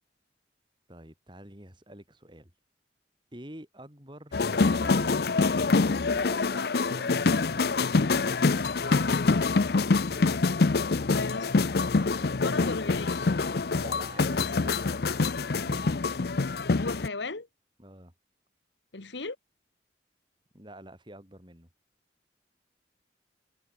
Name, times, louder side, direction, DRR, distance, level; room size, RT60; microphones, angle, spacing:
voice 1, 0.9-2.5 3.3-9.0 12.6-12.7 13.7-14.8 15.7-16.0 17.8-18.1 20.5-21.7, right 1 dB, 25° right, 6.3 m, -48 dB
sound 1, 4.3-17.1, left 3 dB, 60° left, 0.6 m, -25 dB
voice 2, 4.4-4.8 11.1-11.6 12.2-13.3 14.2-15.0 16.7-17.5 18.9-19.4, left 3 dB, 85° left, 1.6 m, -37 dB
head